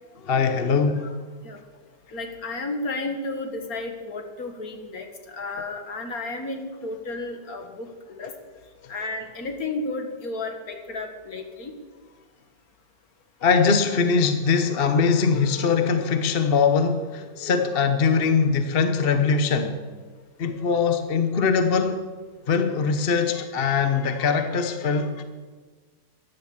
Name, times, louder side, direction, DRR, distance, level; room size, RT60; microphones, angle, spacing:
voice 1, 0.2-1.2 8.2-8.3 8.8-8.9 13.4-19.9 20.4-22.1 22.5-25.2, left 5 dB, 40° left, 8 dB, 0.9 m, -22 dB
voice 2, 2.1-8.3 8.9-11.7, left 2 dB, 60° left, 5 dB, 2.1 m, -32 dB
14.5 x 11.0 x 7.2 m, 1.4 s
omnidirectional pair, 1.8 m